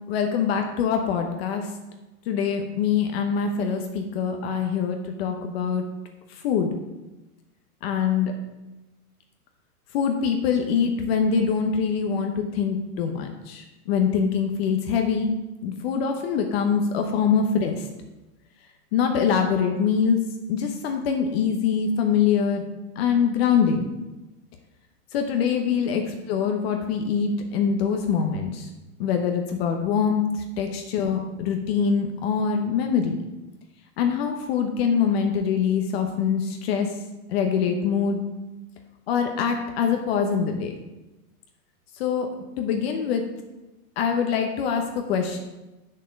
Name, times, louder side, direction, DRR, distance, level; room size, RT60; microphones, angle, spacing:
voice 1, 0.1-1.7 2.3-5.8 6.3-6.7 7.8-8.3 9.9-15.3 15.6-17.9 18.9-20.2 20.5-22.6 23.0-23.9 25.1-26.0 26.3-28.7 29.0-33.2 34.0-36.9 37.3-38.2 39.1-40.7 42.0-42.3 42.6-43.2 44.0-45.4, left 6 dB, 40° left, 4 dB, 0.9 m, -24 dB
7.4 x 6.5 x 5.3 m, 1.1 s
hypercardioid pair, 140°, 45 cm